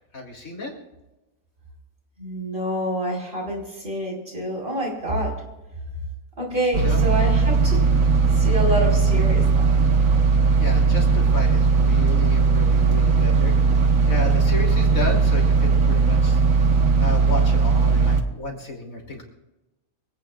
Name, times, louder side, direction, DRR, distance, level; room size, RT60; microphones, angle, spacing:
voice 1, 0.1-0.8 6.8-7.0 10.6-16.4 17.0-19.2, left 2 dB, 65° left, 0 dB, 3.5 m, -33 dB
voice 2, 2.2-5.3 6.4-7.8 8.4-9.7, equal, 40° right, -1 dB, 5.2 m, -27 dB
sound 1, 6.7-18.2, right 4 dB, 65° right, 1.6 m, -18 dB
24.5 x 17.0 x 2.5 m, 1.0 s
omnidirectional pair, 1.5 m